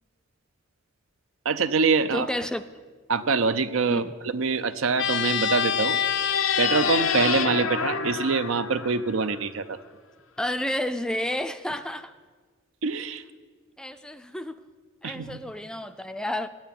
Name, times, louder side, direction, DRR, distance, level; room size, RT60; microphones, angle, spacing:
voice 1, 1.4-2.3 3.1-9.8 12.8-13.2 15.0-15.4, right 4 dB, 85° right, 11 dB, 0.6 m, -25 dB
voice 2, 2.1-2.6 3.9-4.1 10.4-12.1 13.8-14.6 15.0-16.5, left 1 dB, 5° left, 10 dB, 0.4 m, -31 dB
sound 1, 4.9-9.4, left 7 dB, 85° left, 0.7 m, -26 dB
8.9 x 8.9 x 9.3 m, 1.5 s
head